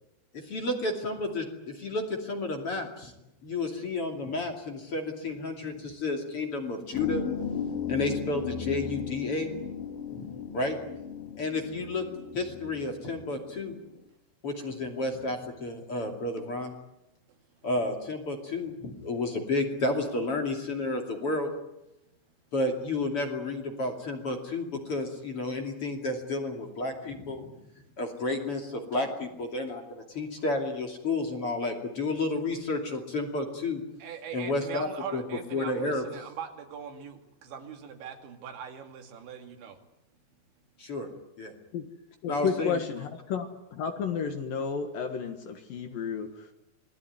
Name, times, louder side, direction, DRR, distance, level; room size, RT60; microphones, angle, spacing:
voice 1, 0.3-3.1 3.4-7.2 7.9-9.5 10.1-10.8 11.4-12.0 12.3-13.7 14.4-16.7 17.6-21.5 22.5-27.5 28.0-33.8 34.3-35.2 35.5-36.0 40.8-41.1 41.4-41.5 42.3-42.8, left 2 dB, 35° left, 3 dB, 3.0 m, -31 dB
sound 1, 6.9-13.9, left 7 dB, 80° left, 4.2 m, -36 dB
voice 2, 34.0-39.8, right 7 dB, 80° right, 4 dB, 4.6 m, -41 dB
voice 3, 42.2-46.5, left 6 dB, 60° left, 6 dB, 3.0 m, -32 dB
27.0 x 20.0 x 9.4 m, 0.91 s
omnidirectional pair, 5.2 m